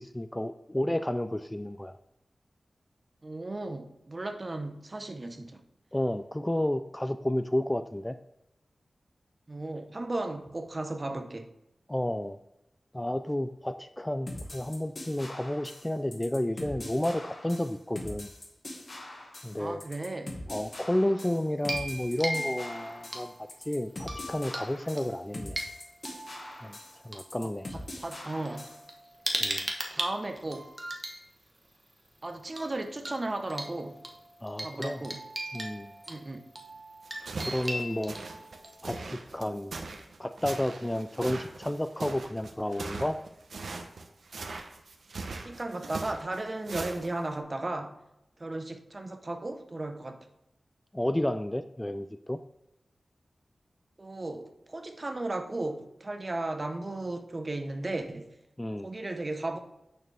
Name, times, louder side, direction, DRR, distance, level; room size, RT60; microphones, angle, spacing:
voice 1, 0.0-2.0 5.9-8.1 11.9-12.4 12.9-18.3 19.4-19.8 20.5-23.3 23.7-25.6 26.6-26.8 27.0-27.7 29.4-29.6 34.4-35.0 35.5-35.9 37.4-38.1 38.8-39.7 40.2-43.2 50.9-52.4 58.6-58.9, left 1 dB, 15° left, 10 dB, 0.3 m, -31 dB
voice 2, 3.2-5.6 9.5-11.5 19.6-20.4 27.4-28.7 29.9-30.7 32.2-34.0 34.6-35.2 36.1-36.4 45.3-48.0 48.4-50.2 54.0-58.3 58.8-59.6, right 2 dB, 35° right, 6 dB, 0.8 m, -35 dB
sound 1, 14.3-28.9, left 1 dB, 50° left, 1.6 m, -43 dB
sound 2, 21.6-23.5 24.0-24.7 25.0-27.2 28.0-28.1 28.5-31.2 32.6-32.7 33.0-33.1 33.5-38.9, right 1 dB, 20° right, 1.3 m, -38 dB
sound 3, 37.0-47.3, right 3 dB, 85° right, 0.8 m, -40 dB
8.8 x 6.5 x 3.4 m, 0.86 s
wide cardioid pair, 85°, 0 cm